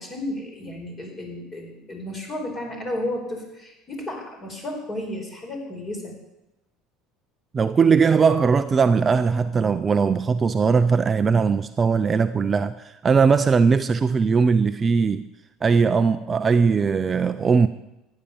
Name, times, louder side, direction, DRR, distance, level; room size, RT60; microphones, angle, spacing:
voice 1, 0.0-6.1, left 1 dB, 25° left, 3 dB, 4.5 m, -33 dB
voice 2, 7.5-15.3 15.6-17.7, right 5 dB, 25° right, 10 dB, 0.5 m, -19 dB
14.5 x 10.0 x 7.2 m, 0.93 s
cardioid pair, 130°, 0 cm